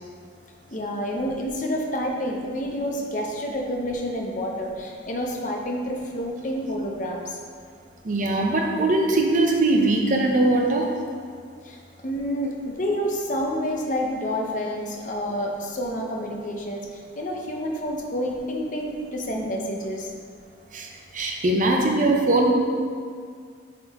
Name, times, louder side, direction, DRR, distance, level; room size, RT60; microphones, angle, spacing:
voice 1, 0.7-7.4 11.6-20.1, equal, 40° left, 1 dB, 0.7 m, -29 dB
voice 2, 8.0-10.9 20.7-20.9 21.1-22.5, right 2 dB, 40° right, 1 dB, 0.6 m, -21 dB
8.2 x 3.7 x 3.5 m, 2.1 s
head